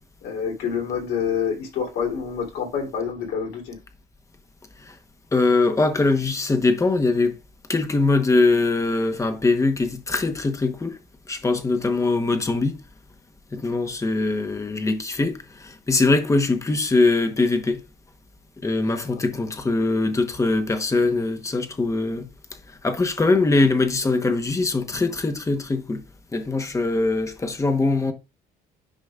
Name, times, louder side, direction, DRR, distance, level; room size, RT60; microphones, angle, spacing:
voice 1, 0.2-3.8, left 7 dB, 85° left, 3.1 m, -27 dB
voice 2, 5.3-7.4 7.7-11.0 11.3-12.8 13.5-17.8 18.6-22.3 22.7-26.0 26.3-28.1, left 3 dB, 20° left, 1.0 m, -22 dB
10.0 x 5.1 x 2.4 m
cardioid pair, 110°, 17 cm